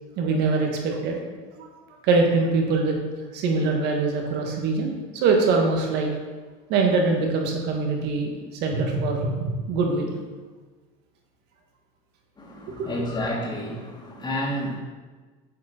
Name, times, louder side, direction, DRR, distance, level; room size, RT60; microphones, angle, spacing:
voice 1, 0.2-1.2 1.5-1.7 2.0-2.9 3.3-6.1 6.7-10.1 12.7-12.9, right 3 dB, 65° right, 2 dB, 1.5 m, -23 dB
voice 2, 12.4-14.8, equal, 25° left, -2 dB, 1.9 m, -30 dB
7.2 x 4.7 x 4.4 m, 1.3 s
supercardioid pair, 105°, 19 cm